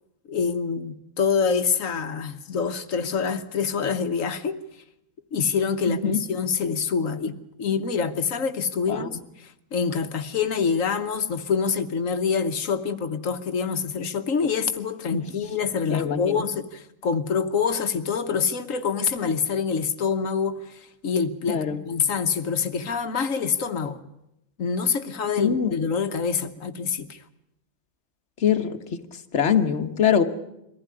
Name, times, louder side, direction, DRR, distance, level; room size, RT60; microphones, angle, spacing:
voice 1, 0.3-4.6 5.3-24.0 24.6-27.2, left 6 dB, 70° left, 1.4 m, -26 dB
voice 2, 5.9-6.2 8.9-9.1 15.1-15.3 15.9-16.4 21.5-21.8 25.4-25.7 28.4-28.8 29.3-30.2, left 8 dB, 55° left, 1.5 m, -23 dB
23.0 x 15.5 x 9.7 m
omnidirectional pair, 1.4 m